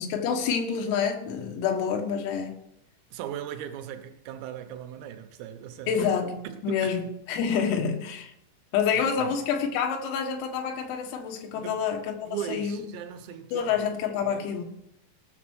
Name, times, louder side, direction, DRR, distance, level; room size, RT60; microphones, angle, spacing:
voice 1, 0.0-2.6 5.9-8.3 8.7-12.8 13.5-14.6, left 7 dB, 90° left, 4.3 m, -28 dB
voice 2, 3.1-6.1 6.5-7.0 9.2-9.4 11.5-11.9 12.3-13.8 14.2-14.6, right 10 dB, 80° right, 3.7 m, -38 dB
18.5 x 6.6 x 6.3 m
omnidirectional pair, 5.9 m